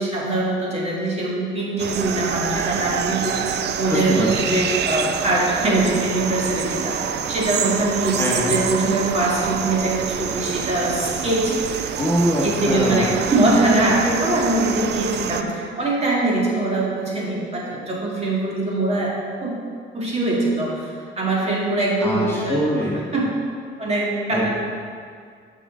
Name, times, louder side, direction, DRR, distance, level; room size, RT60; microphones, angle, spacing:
voice 1, 0.0-11.9 12.4-19.1 19.4-19.6 19.9-22.6 23.1-23.2 23.8-24.5, right 2 dB, 30° right, -5 dB, 2.4 m, -22 dB
sound 1, 1.8-15.4, right 8 dB, 60° right, 0.5 m, -27 dB
voice 2, 3.9-4.6 8.2-8.6 12.0-13.2 22.0-23.1 24.3-24.5, equal, 10° left, -5 dB, 1.7 m, -23 dB
11.5 x 5.7 x 3.8 m, 2.2 s
cardioid pair, 90°, 20 cm